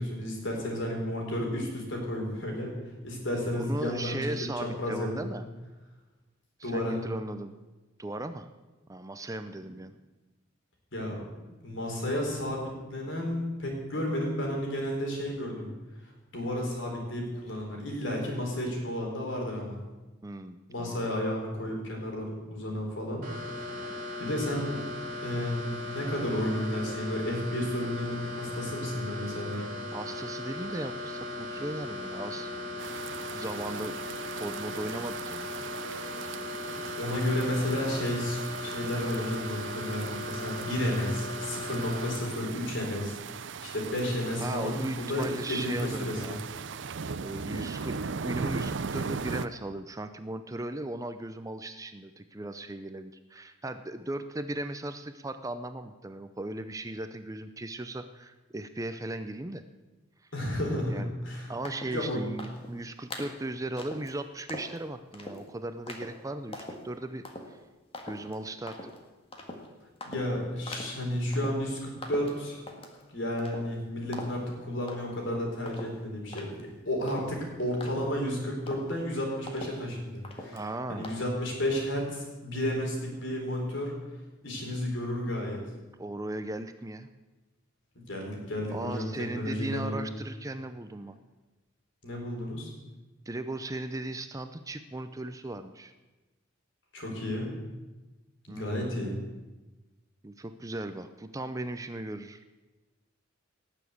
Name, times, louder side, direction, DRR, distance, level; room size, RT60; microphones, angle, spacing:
voice 1, 0.0-2.7 3.0-4.3 4.6-5.3 6.6-7.0 10.9-11.2 11.6-15.7 16.3-19.8 20.7-23.2 23.6-29.6 36.9-43.2 43.6-46.4 60.3-61.5 61.8-62.2 70.0-72.6 73.1-80.6 80.9-83.9 84.4-85.6 88.1-89.1 89.3-90.1 92.0-92.7 96.9-97.5 98.4-99.1, left 1 dB, 65° left, 0 dB, 4.4 m, -32 dB
voice 2, 3.7-5.4 6.6-7.5 8.0-8.5 8.9-9.9 20.2-21.1 29.9-32.5 33.3-34.1 34.4-35.5 44.4-46.5 47.2-59.6 60.9-61.1 61.5-67.6 68.1-68.9 80.5-81.1 86.0-87.1 88.7-91.2 93.3-95.9 98.5-98.7 100.2-102.4, right 1 dB, 15° right, 9 dB, 0.5 m, -37 dB
sound 1, 23.2-42.2, left 1 dB, 45° right, 3.9 m, -38 dB
sound 2, 32.8-49.5, right 5 dB, 65° right, 0.6 m, -38 dB
sound 3, 61.7-62.0 62.4-62.7 63.1-63.4 63.8-64.1 64.5-64.8 65.1-65.4 65.9-66.2 66.5-66.9 67.3-67.5 67.9-68.4 68.7-69.0 69.3-69.7 70.0-70.3 70.7-71.0 71.3-71.7 72.0-73.0 73.4-73.8 74.1-74.5 74.9-75.3 75.7-78.3 78.7-79.0 79.5-79.9 80.2-80.7 81.0-81.2, left 2 dB, 30° left, 1.8 m, -42 dB
18.0 x 7.2 x 8.3 m, 1.2 s
head